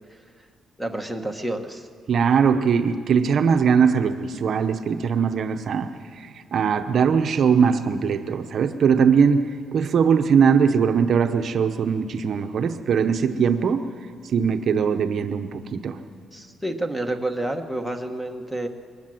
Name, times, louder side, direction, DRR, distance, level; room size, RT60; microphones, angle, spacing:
voice 1, 0.8-1.9 16.3-18.7, right 1 dB, ahead, 6 dB, 1.2 m, -29 dB
voice 2, 2.1-9.4 9.7-13.8 14.3-16.0, right 6 dB, 50° right, 7 dB, 0.8 m, -20 dB
22.0 x 19.5 x 7.7 m, 2.1 s
cardioid pair, 155°, 0 cm